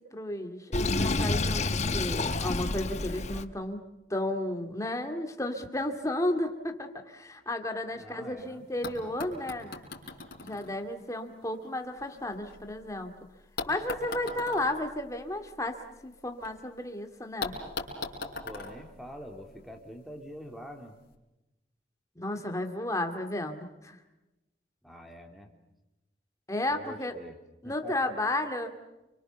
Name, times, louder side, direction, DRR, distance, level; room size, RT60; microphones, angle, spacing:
voice 1, 0.1-9.7 10.4-13.1 13.7-17.5 22.2-24.0 26.5-27.2 27.6-28.8, left 1 dB, 15° left, 5 dB, 2.2 m, -33 dB
Sink (filling or washing), 0.7-3.5, left 2 dB, 40° left, 1.1 m, -29 dB
voice 2, 7.9-9.1 18.4-21.0 24.8-25.5 26.7-27.3 27.6-28.1, equal, ahead, 4 dB, 3.1 m, -45 dB
sound 1, 8.4-8.5 8.8-12.9 13.6-16.5 16.8-16.9 17.4-19.8 20.8-20.9, left 3 dB, 55° left, 4.8 m, -41 dB
29.5 x 24.0 x 6.9 m, 0.99 s
head